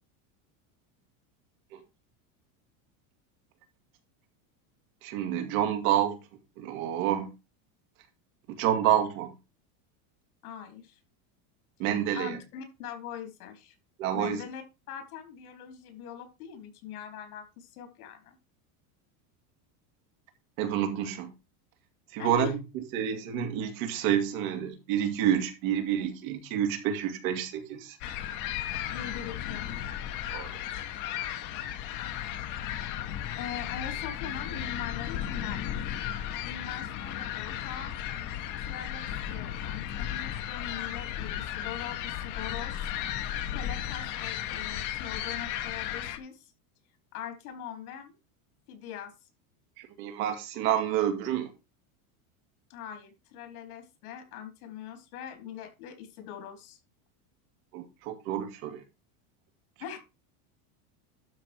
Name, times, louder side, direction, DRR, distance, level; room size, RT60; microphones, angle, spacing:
voice 1, 5.0-6.2 6.6-7.3 8.6-9.3 11.8-12.4 14.0-14.4 20.6-21.3 22.1-28.0 30.3-30.5 49.8-51.5 57.7-58.8, right 10 dB, 70° right, 2.3 m, -28 dB
voice 2, 10.4-11.0 12.1-13.7 14.1-14.6 14.9-18.4 22.2-22.5 28.9-29.7 33.3-35.9 36.4-38.0 38.6-42.9 43.5-46.5 47.1-48.1 48.7-49.1 52.7-56.8 59.8-60.0, left 8 dB, 80° left, 4.1 m, -42 dB
sound 1, 28.0-46.2, left 11 dB, 45° left, 1.2 m, -35 dB
12.0 x 4.3 x 4.6 m
supercardioid pair, 160°, 43 cm